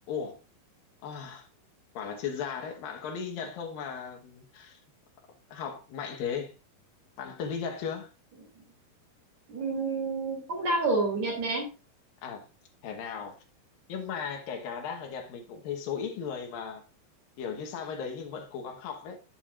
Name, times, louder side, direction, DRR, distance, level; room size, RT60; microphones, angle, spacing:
voice 1, 0.1-0.4 1.0-1.5 1.9-4.8 5.5-6.5 7.2-8.1 12.2-12.5 12.8-13.4 13.9-16.8 17.4-19.3, left 6 dB, 70° left, 2.9 m, -36 dB
voice 2, 9.5-11.6, right 3 dB, 50° right, 3.6 m, -28 dB
10.5 x 8.8 x 2.5 m
omnidirectional pair, 4.4 m